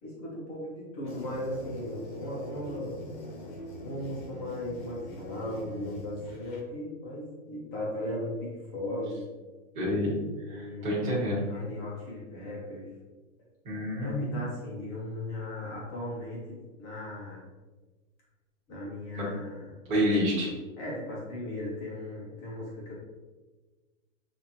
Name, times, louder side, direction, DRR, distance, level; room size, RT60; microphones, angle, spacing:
voice 1, 0.0-3.0 3.8-9.3 10.5-12.9 14.0-17.5 18.7-19.8 20.8-22.9, left 1 dB, 10° left, -5 dB, 0.5 m, -37 dB
sound 1, 1.0-6.6, equal, 35° left, 0.8 m, -43 dB
voice 2, 9.7-10.2 10.5-11.4 13.6-14.4 19.1-19.2 19.9-20.5, equal, 15° right, -8 dB, 1.4 m, -28 dB
6.9 x 2.4 x 2.9 m, 1.3 s
hypercardioid pair, 165°, 40 cm